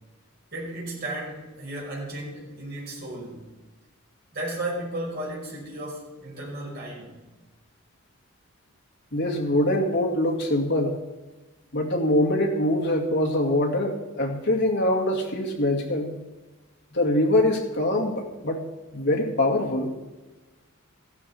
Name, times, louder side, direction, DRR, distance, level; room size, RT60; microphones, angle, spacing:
voice 1, 0.5-3.4 4.3-7.2, right 1 dB, 50° right, -5 dB, 5.4 m, -34 dB
voice 2, 9.1-11.0 11.7-16.2 16.9-18.6 18.9-19.9, left 1 dB, 55° left, 0 dB, 2.2 m, -23 dB
15.0 x 12.0 x 4.3 m, 1.2 s
head